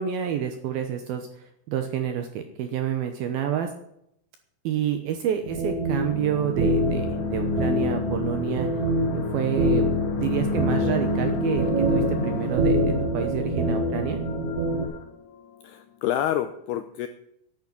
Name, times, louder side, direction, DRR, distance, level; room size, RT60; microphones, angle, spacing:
voice 1, 0.0-3.7 4.6-8.7 9.1-9.9 10.1-14.2, right 9 dB, 75° right, 6 dB, 2.3 m, -29 dB
sound 1, 5.4-14.8, right 1 dB, 50° right, 2.7 m, -25 dB
sound 2, 6.1-15.8, left 7 dB, 65° left, 3.7 m, -33 dB
voice 2, 15.6-17.1, left 11 dB, 85° left, 9 dB, 2.3 m, -28 dB
10.5 x 8.6 x 9.8 m, 0.76 s
omnidirectional pair, 5.4 m